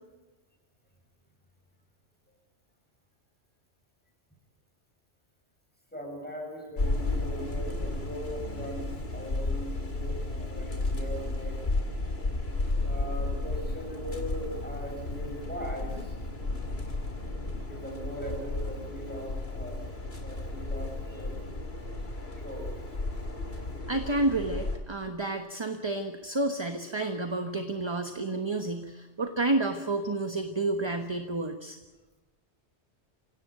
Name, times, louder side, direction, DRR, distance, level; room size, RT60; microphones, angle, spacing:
voice 1, 5.9-11.6 12.8-16.2 17.7-19.8 20.2-21.3 22.4-22.7, right 1 dB, 10° left, 0 dB, 7.7 m, -40 dB
sound 1, 6.8-24.8, left 2 dB, 65° left, 2.6 m, -33 dB
voice 2, 23.9-31.8, right 2 dB, 25° right, 6 dB, 1.2 m, -30 dB
25.0 x 17.0 x 9.3 m, 1.2 s
omnidirectional pair, 1.2 m